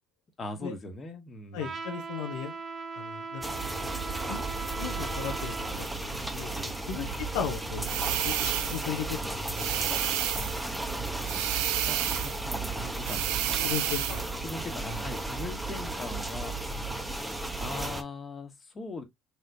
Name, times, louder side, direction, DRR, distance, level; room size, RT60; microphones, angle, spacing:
voice 1, 0.4-1.8 6.9-7.1 11.9-13.6 14.4-16.5 17.5-19.0, left 2 dB, 30° left, 1.3 m, -40 dB
voice 2, 1.5-2.5 3.0-3.8 4.3-4.4 4.8-7.1 7.3-7.9 8.2-9.2 9.4-9.7 10.1-10.5 13.6-14.3, left 8 dB, 85° left, 0.8 m, -36 dB
Trumpet, 1.6-5.8, right 4 dB, 35° right, 0.8 m, -39 dB
sound 1, 3.4-18.0, right 2 dB, 5° right, 0.8 m, -34 dB
sound 2, 7.8-8.9 9.5-10.6 11.3-12.4 13.0-14.3, right 13 dB, 85° right, 0.5 m, -30 dB
4.1 x 3.4 x 2.6 m
supercardioid pair, 85°, 0 cm